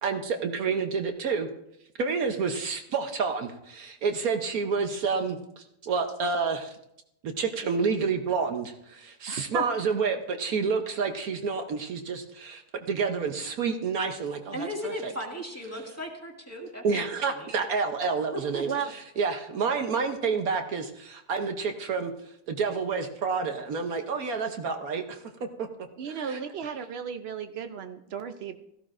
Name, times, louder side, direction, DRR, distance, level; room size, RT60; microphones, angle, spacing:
voice 1, 0.0-1.5 2.0-6.8 7.2-12.6 12.9-15.1 16.8-18.7 19.2-22.1 22.5-25.2 25.6-25.7 26.1-26.4, right 5 dB, 65° right, 5 dB, 1.2 m, -29 dB
voice 2, 9.3-9.6 18.6-18.9 26.0-28.6, right 7 dB, 85° right, 8 dB, 0.5 m, -34 dB
voice 3, 14.5-17.5 18.3-18.6, equal, 10° left, -1 dB, 2.0 m, -37 dB
17.0 x 14.0 x 2.5 m, 0.80 s
omnidirectional pair, 1.8 m